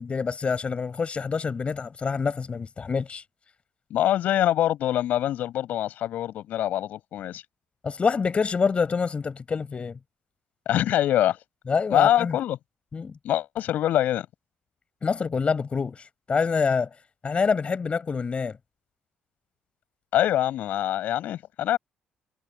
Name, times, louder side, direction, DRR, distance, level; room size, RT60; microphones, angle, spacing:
voice 1, 0.0-3.2 7.8-10.0 11.7-12.4 12.9-13.2 15.0-16.9 17.2-18.6, left 5 dB, 40° left, 5.0 m, -26 dB
voice 2, 3.9-7.4 10.7-11.4 11.9-12.6 13.2-14.3 20.1-21.8, left 12 dB, 75° left, 7.8 m, -24 dB
supercardioid pair, 60°, 3 cm